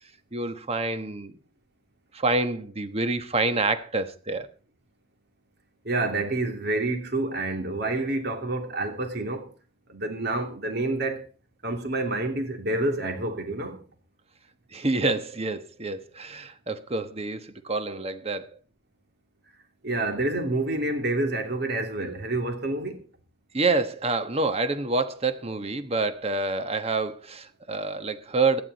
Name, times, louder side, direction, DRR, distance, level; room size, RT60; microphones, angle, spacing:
voice 1, 0.3-1.4 2.1-4.5 14.7-18.5 23.5-28.6, right 3 dB, 35° right, 1.2 m, -27 dB
voice 2, 5.8-9.5 9.9-11.2 11.6-13.8 19.8-23.0, right 2 dB, 60° right, 2.9 m, -28 dB
17.5 x 11.0 x 4.1 m
head